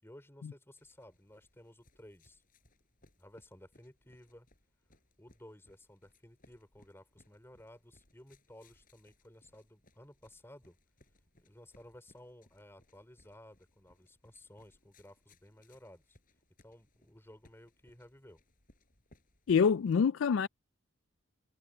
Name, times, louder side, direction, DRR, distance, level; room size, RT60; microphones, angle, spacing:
voice 1, 0.0-2.4 3.2-4.5 5.2-10.8 11.4-16.2 16.6-18.4, left 1 dB, 10° left, 4.4 m, -56 dB
sound 1, 0.8-20.0, left 1 dB, 40° left, 5.9 m, -68 dB
voice 2, 19.5-20.5, left 6 dB, 70° left, 0.3 m, -26 dB
head